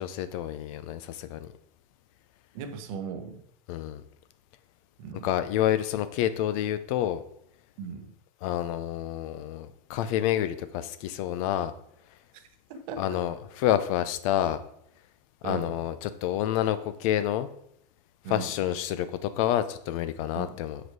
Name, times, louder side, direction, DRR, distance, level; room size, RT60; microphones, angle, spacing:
voice 1, 0.0-1.5 3.7-4.0 5.2-7.2 8.4-11.7 13.0-14.6 15.4-17.5 18.3-20.8, left 11 dB, 55° left, 0.7 m, -28 dB
voice 2, 2.5-3.4 5.0-5.3 7.8-8.1 12.3-12.5 12.9-13.2 15.4-15.8 18.2-18.5 20.3-20.6, right 6 dB, 60° right, 1.0 m, -37 dB
6.2 x 5.0 x 4.7 m
hypercardioid pair, 110°, 20 cm